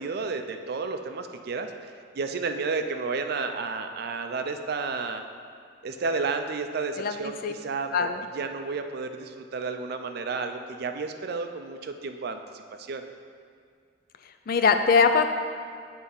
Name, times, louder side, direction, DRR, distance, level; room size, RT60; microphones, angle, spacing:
voice 1, 0.0-1.7 2.2-5.2 5.8-12.4 12.8-13.0, right 4 dB, 55° right, 6 dB, 0.4 m, -31 dB
voice 2, 14.5-15.2, left 5 dB, 50° left, 7 dB, 0.4 m, -21 dB
8.2 x 3.4 x 5.5 m, 2.2 s
head